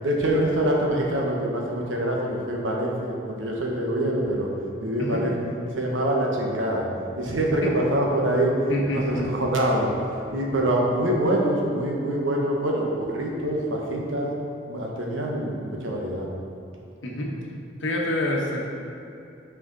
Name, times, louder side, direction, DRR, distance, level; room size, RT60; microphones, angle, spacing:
voice 1, 0.0-4.5 4.8-5.3 5.7-6.9 7.2-8.6 8.9-9.9 10.3-14.3 14.7-16.3, right 1 dB, 85° right, -1 dB, 1.1 m, -25 dB
voice 2, 8.7-9.3 17.0-17.3 17.8-18.7, left 1 dB, 75° left, -2 dB, 1.1 m, -26 dB
6.3 x 5.0 x 3.9 m, 2.7 s
head